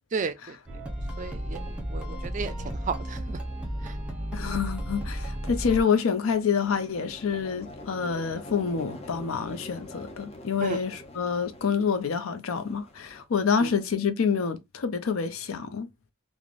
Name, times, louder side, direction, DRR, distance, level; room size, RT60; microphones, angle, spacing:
voice 1, 0.1-0.6 1.2-3.4 3.8-4.0 10.6-10.8 13.6-13.7, right 5 dB, 40° right, 0.4 m, -34 dB
sound 1, 0.7-5.8, equal, 5° right, 0.7 m, -33 dB
voice 2, 4.3-15.9, left 6 dB, 80° left, 0.5 m, -27 dB
sound 2, 5.5-13.2, left 1 dB, 30° left, 0.6 m, -45 dB
3.1 x 2.1 x 2.4 m
head